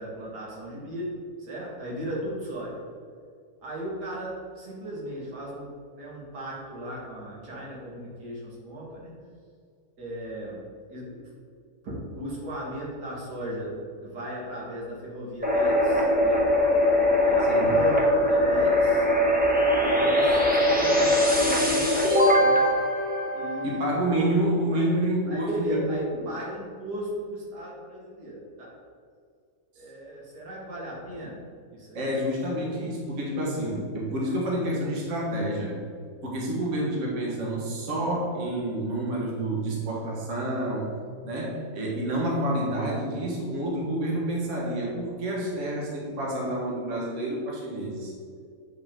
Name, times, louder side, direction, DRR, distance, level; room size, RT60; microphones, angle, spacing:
voice 1, 0.0-2.8 3.6-9.1 10.0-10.6 10.9-11.2 11.8-16.4 17.2-19.1 19.7-22.8 23.3-24.3 24.7-24.9 25.3-28.8 29.8-31.4 31.7-32.2 33.4-33.5, equal, 85° right, -5 dB, 2.4 m, -36 dB
sound 1, 15.4-24.1, left 1 dB, 5° right, 0.8 m, -21 dB
voice 2, 23.6-25.9 31.9-35.9 36.2-41.0 41.2-48.1, right 1 dB, 50° right, -4 dB, 1.6 m, -28 dB
8.2 x 5.2 x 3.7 m, 2.3 s
omnidirectional pair, 1.7 m